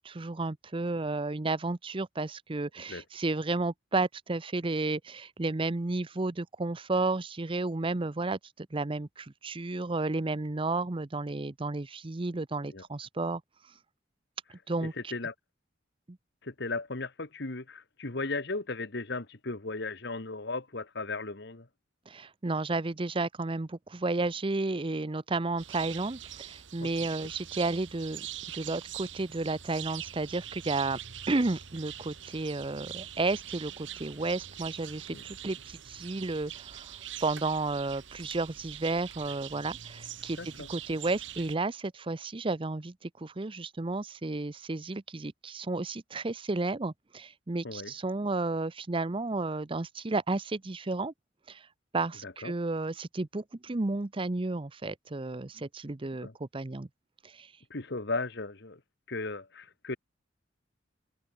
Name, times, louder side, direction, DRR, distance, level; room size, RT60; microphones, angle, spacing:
voice 1, 0.0-13.4 14.7-15.1 22.1-28.3 28.5-31.0 31.3-36.9 37.2-51.1 51.5-51.6 51.9-56.9 57.3-57.5, right 3 dB, 30° right, 0.7 m, -32 dB
voice 2, 14.8-15.3 16.4-21.7 26.8-26.9 35.1-35.2 40.4-40.7 47.6-47.9 52.2-52.5 56.2-56.3 57.7-58.8 59.1-60.0, left 3 dB, 60° left, 1.7 m, -36 dB
sound 1, 25.6-41.6, right 11 dB, 80° right, 2.1 m, -43 dB
head